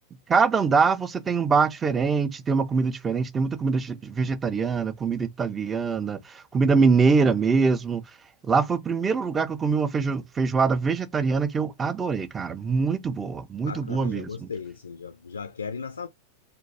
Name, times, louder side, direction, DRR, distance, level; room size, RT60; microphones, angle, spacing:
voice 1, 0.3-8.0 8.4-14.5, right 5 dB, 20° right, 0.4 m, -24 dB
voice 2, 13.6-16.1, left 5 dB, 75° left, 0.3 m, -36 dB
2.5 x 2.2 x 4.0 m
figure-of-eight pair, 90°, 0 cm